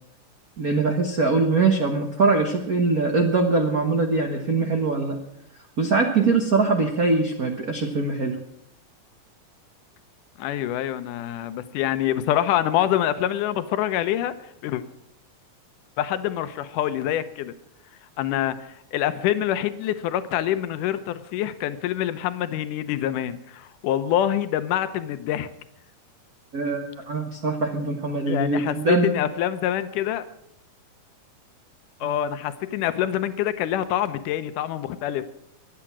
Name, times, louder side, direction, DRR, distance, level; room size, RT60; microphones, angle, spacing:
voice 1, 0.6-5.2 5.8-8.4 26.5-29.1, right 3 dB, 50° right, 4 dB, 1.0 m, -22 dB
voice 2, 10.4-14.3 14.6-14.8 16.0-17.5 18.2-25.5 28.3-30.2 32.0-35.2, left 11 dB, 80° left, 11 dB, 2.4 m, -26 dB
23.0 x 9.0 x 6.1 m, 0.77 s
omnidirectional pair, 3.6 m